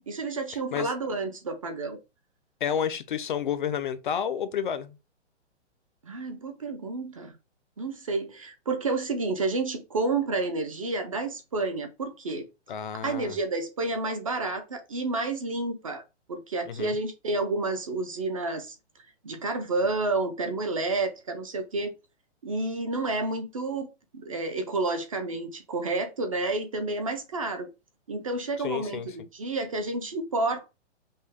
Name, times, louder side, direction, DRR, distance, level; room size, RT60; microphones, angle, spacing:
voice 1, 0.0-2.0 6.0-7.3 7.8-12.5 13.0-16.0 16.3-18.8 19.2-21.9 22.4-23.9 24.1-27.7 28.1-30.7, right 3 dB, 30° right, 0.4 m, -30 dB
voice 2, 2.6-5.0 12.7-13.4 16.7-17.0 28.6-29.1, left 8 dB, 45° left, 0.4 m, -30 dB
5.4 x 2.1 x 3.3 m
hypercardioid pair, 165°, 35 cm